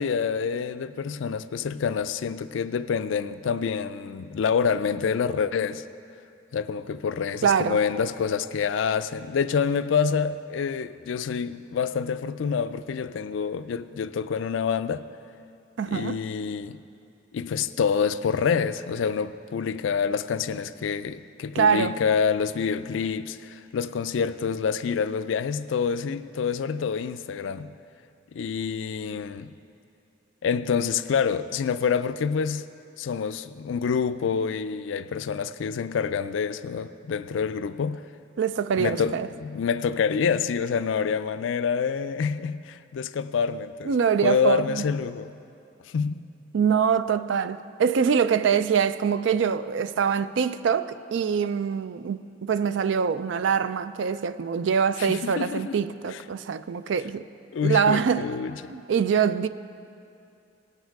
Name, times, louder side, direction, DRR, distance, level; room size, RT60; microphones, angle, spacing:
voice 1, 0.0-5.9 6.5-15.0 15.9-16.8 17.3-27.7 28.3-29.5 30.4-32.7 33.0-38.0 38.8-43.9 44.2-45.3 45.9-46.3 55.0-55.8 56.1-56.2 57.5-58.7, left 6 dB, 80° left, 0.4 m, -27 dB
voice 2, 7.4-7.8 15.8-16.2 21.5-22.0 38.4-39.3 43.9-44.8 46.5-57.2 57.6-58.3 58.7-59.5, right 7 dB, 70° right, 0.4 m, -24 dB
17.5 x 6.6 x 4.7 m
head